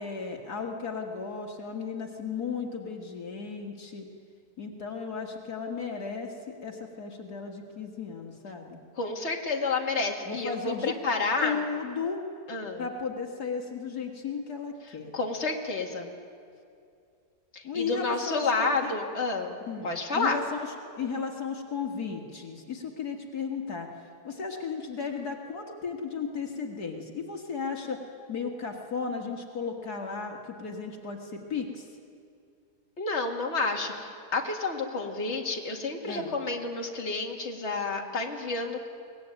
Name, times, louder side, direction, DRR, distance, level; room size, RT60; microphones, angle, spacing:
voice 1, 0.0-4.1 4.6-8.8 10.3-10.9 11.4-12.2 12.8-15.1 17.6-18.9 19.6-28.0 28.3-31.9 36.0-36.3, left 5 dB, 70° left, 2 dB, 2.2 m, -35 dB
voice 2, 9.0-11.6 12.5-12.8 15.1-16.1 17.5-19.5 19.8-20.4 33.0-38.9, left 3 dB, 45° left, 1 dB, 2.3 m, -30 dB
23.0 x 19.0 x 9.0 m, 2.4 s
omnidirectional pair, 1.7 m